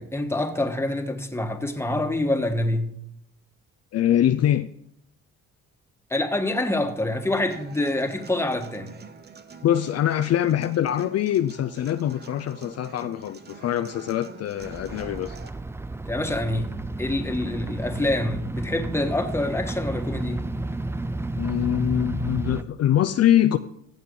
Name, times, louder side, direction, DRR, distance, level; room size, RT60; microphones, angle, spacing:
voice 1, 0.0-2.9 6.1-8.9 16.1-20.4, left 1 dB, 10° left, 1.4 m, -26 dB
voice 2, 3.9-4.7 9.6-15.4 21.3-23.6, left 11 dB, 55° left, 0.5 m, -23 dB
Human voice / Acoustic guitar, 7.5-15.5, right 5 dB, 35° right, 0.9 m, -45 dB
sound 1, 14.6-22.6, right 2 dB, 10° right, 0.4 m, -32 dB
15.0 x 7.5 x 3.8 m
cardioid pair, 90°, 30 cm